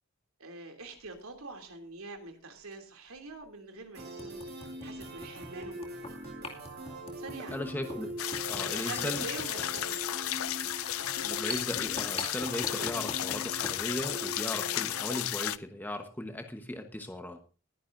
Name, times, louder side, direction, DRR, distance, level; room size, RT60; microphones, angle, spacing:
voice 1, 0.4-4.4 4.8-6.2 7.2-7.7 8.6-10.2, right 3 dB, 80° right, 4 dB, 2.8 m, -45 dB
sound 1, 1.0-1.2 2.7-2.8 3.3-3.4 4.0-13.8, left 2 dB, 25° left, 2.3 m, -44 dB
sound 2, 3.9-15.2, right 1 dB, 50° right, 6.9 m, -43 dB
voice 2, 7.5-8.1 8.5-9.3 11.2-17.4, left 1 dB, 10° left, 5 dB, 1.1 m, -37 dB
sound 3, 8.2-15.6, left 13 dB, 80° left, 0.5 m, -33 dB
20.5 x 10.5 x 2.6 m, 0.35 s
head